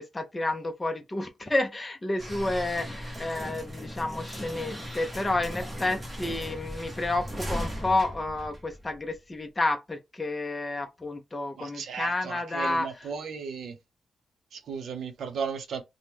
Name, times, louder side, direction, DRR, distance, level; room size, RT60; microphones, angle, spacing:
voice 1, 0.0-13.1, left 2 dB, 20° left, 0.4 m, -30 dB
sound 1, 2.2-9.2, equal, 10° right, 0.8 m, -37 dB
voice 2, 11.6-13.7 14.5-15.8, right 6 dB, 75° right, 0.6 m, -35 dB
2.9 x 2.0 x 3.4 m
wide cardioid pair, 135°, 0 cm